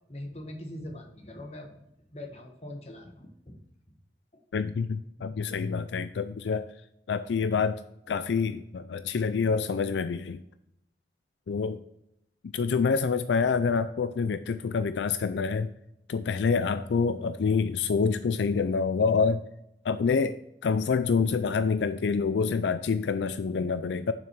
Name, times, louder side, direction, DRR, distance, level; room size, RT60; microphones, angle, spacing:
voice 1, 0.1-1.8 2.1-3.6 4.3-4.4 5.2-5.3, left 1 dB, 35° left, 2 dB, 1.3 m, -42 dB
voice 2, 4.5-6.7 7.1-7.8 8.1-10.4 11.5-11.8 12.5-15.7 16.1-19.4 19.8-20.4 20.6-24.1, left 5 dB, 80° left, 12 dB, 0.4 m, -27 dB
7.1 x 6.1 x 4.5 m, 0.80 s
head